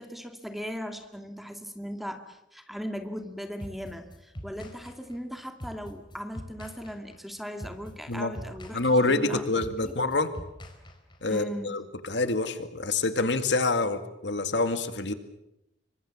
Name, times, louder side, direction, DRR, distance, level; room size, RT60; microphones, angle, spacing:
voice 1, 0.0-8.8 9.1-9.9 11.3-11.8, equal, ahead, 6 dB, 2.3 m, -38 dB
sound 1, 3.6-11.4, equal, 25° left, 3.9 m, -43 dB
voice 2, 8.7-10.3 11.2-15.1, left 3 dB, 70° left, 10 dB, 2.2 m, -26 dB
27.5 x 24.0 x 7.4 m, 0.85 s
head